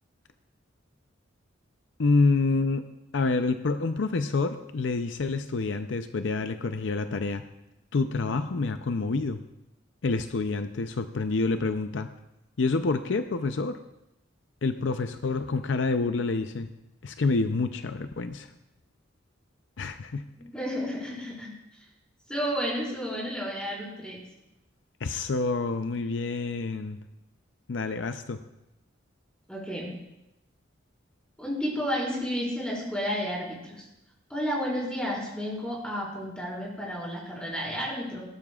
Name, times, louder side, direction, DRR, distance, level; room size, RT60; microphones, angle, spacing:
voice 1, 2.0-2.9 3.1-7.4 7.9-9.4 10.0-12.1 12.6-13.8 14.6-16.7 17.0-18.5 19.8-20.3 25.0-27.0 27.7-28.4, left 3 dB, 70° left, 9 dB, 0.5 m, -27 dB
voice 2, 20.4-21.5 22.3-24.2 29.5-29.9 31.4-33.8 34.3-38.2, equal, 5° left, -5 dB, 4.7 m, -31 dB
18.0 x 12.5 x 2.4 m, 0.90 s
head